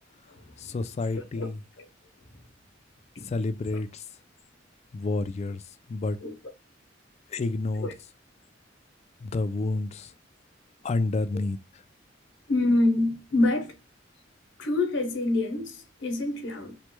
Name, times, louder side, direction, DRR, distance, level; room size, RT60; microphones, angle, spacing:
voice 1, 0.6-1.6 3.3-4.0 4.9-5.6 5.9-6.2 7.3-7.9 9.2-10.1 10.8-11.6, left 3 dB, 35° left, 0.3 m, -29 dB
voice 2, 1.1-1.5 3.1-3.3 6.2-6.3 7.8-7.9 12.5-13.7 14.6-16.7, left 2 dB, 75° left, 0.9 m, -26 dB
3.1 x 2.2 x 2.9 m
head